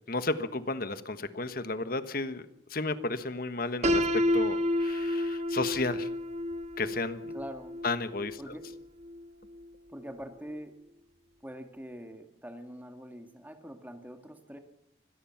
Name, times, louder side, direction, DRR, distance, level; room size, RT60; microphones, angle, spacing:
voice 1, 0.1-6.1 6.8-7.3 7.8-8.5, left 2 dB, 50° left, 11 dB, 1.4 m, -33 dB
Piano, 3.8-9.7, left 1 dB, 35° right, 1.5 m, -30 dB
voice 2, 7.3-7.8 8.4-8.6 9.9-10.7 11.4-14.6, equal, 10° right, 6 dB, 2.0 m, -44 dB
25.0 x 18.0 x 5.9 m, 0.80 s
head